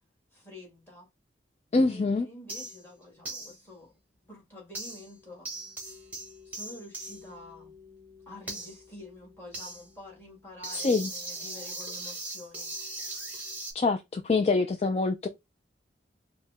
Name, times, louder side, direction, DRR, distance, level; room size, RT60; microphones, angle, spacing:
voice 1, 0.3-1.1 1.8-3.9 4.2-5.5 6.4-7.7 8.3-12.7, left 1 dB, 10° left, 1.8 m, -48 dB
voice 2, 1.7-2.3 10.7-11.1 13.7-15.3, left 3 dB, 35° left, 0.3 m, -25 dB
sound 1, 2.5-2.9 3.2-3.6 4.7-5.2 5.4-13.7, right 2 dB, 10° right, 1.0 m, -40 dB
4.5 x 2.1 x 3.5 m
head